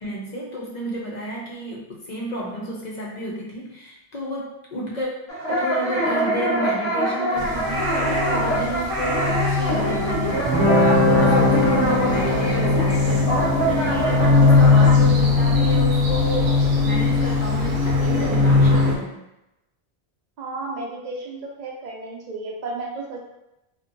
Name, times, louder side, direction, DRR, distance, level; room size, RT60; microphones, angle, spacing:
voice 1, 0.0-5.1 5.5-13.4 13.7-19.2, right 1 dB, 55° left, -3 dB, 0.5 m, -31 dB
sound 1, 5.3-14.9, right 1 dB, 35° left, 0.9 m, -25 dB
sound 2, 7.4-19.0, left 3 dB, 85° right, 0.9 m, -20 dB
Guitar, 10.4-17.6, left 1 dB, ahead, 0.9 m, -24 dB
voice 2, 20.4-23.2, right 2 dB, 55° right, -1 dB, 0.5 m, -33 dB
2.6 x 2.1 x 2.5 m, 0.89 s
omnidirectional pair, 1.1 m